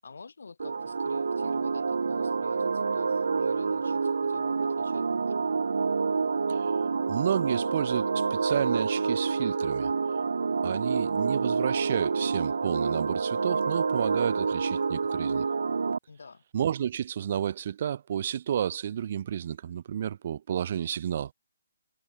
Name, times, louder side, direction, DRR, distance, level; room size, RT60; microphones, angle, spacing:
voice 1, 0.0-5.5 16.1-16.4, left 4 dB, 80° left, 7.0 m, -50 dB
sound 1, 0.6-16.0, right 4 dB, 75° right, 1.1 m, -28 dB
voice 2, 7.1-9.9 10.6-15.5 16.5-21.3, right 9 dB, 35° right, 1.1 m, -31 dB
hypercardioid pair, 175°, 0 cm